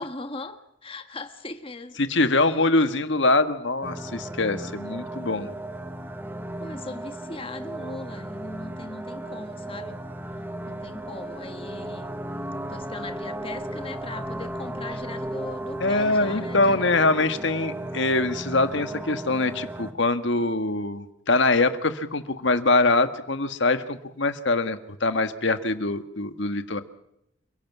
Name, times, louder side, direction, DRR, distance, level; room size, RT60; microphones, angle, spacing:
voice 1, 0.0-2.0 6.6-10.0 10.7-12.2 12.7-17.1, left 2 dB, 25° left, 1.5 m, -39 dB
voice 2, 2.0-5.5 15.8-26.8, left 2 dB, 65° left, 1.6 m, -23 dB
sound 1, 3.8-19.9, right 1 dB, 10° right, 1.3 m, -35 dB
29.0 x 17.0 x 6.1 m
head